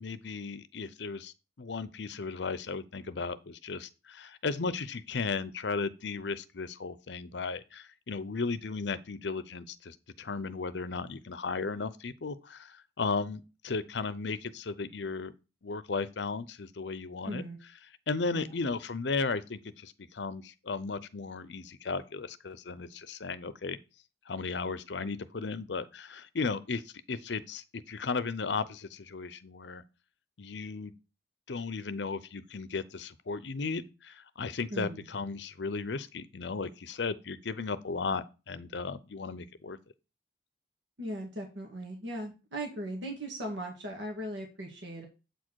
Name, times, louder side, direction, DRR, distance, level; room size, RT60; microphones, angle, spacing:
voice 1, 0.0-15.3 15.6-17.4 18.1-23.8 24.3-29.8 30.4-30.9 31.5-39.8, left 4 dB, 75° left, 0.7 m, -35 dB
voice 2, 17.2-17.6 18.3-18.5 34.7-35.0 41.0-45.0, right 1 dB, 85° right, 1.9 m, -38 dB
8.0 x 4.4 x 4.7 m
head